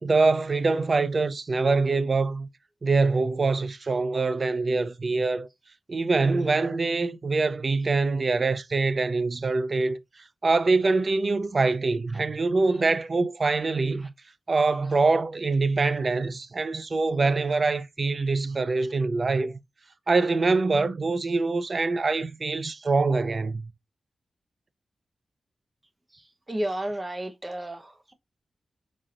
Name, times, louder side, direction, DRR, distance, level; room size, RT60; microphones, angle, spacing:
voice 1, 0.0-2.5 2.8-5.5 5.9-10.0 10.4-14.1 14.5-19.5 20.1-23.7, right 3 dB, 50° right, 0.5 m, -24 dB
voice 2, 26.5-28.1, right 1 dB, 25° right, 0.8 m, -32 dB
4.6 x 4.3 x 2.5 m
cardioid pair, 60°, 0 cm